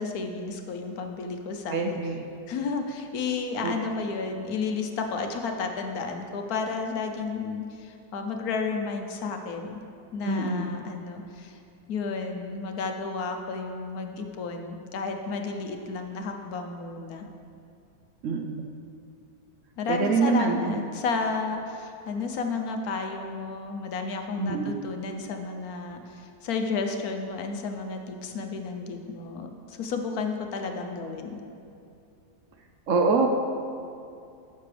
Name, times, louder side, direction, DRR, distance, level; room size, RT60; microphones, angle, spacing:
voice 1, 0.0-2.0 2.5-9.8 10.1-11.6 11.9-17.3 19.8-31.4, left 4 dB, 70° left, 5 dB, 1.1 m, -32 dB
voice 2, 1.7-2.2 3.6-3.7 10.2-10.7 18.2-18.7 19.9-20.8 24.4-24.8 32.9-33.3, right 4 dB, 65° right, 3 dB, 0.8 m, -25 dB
12.0 x 6.8 x 3.2 m, 2.5 s
omnidirectional pair, 1.7 m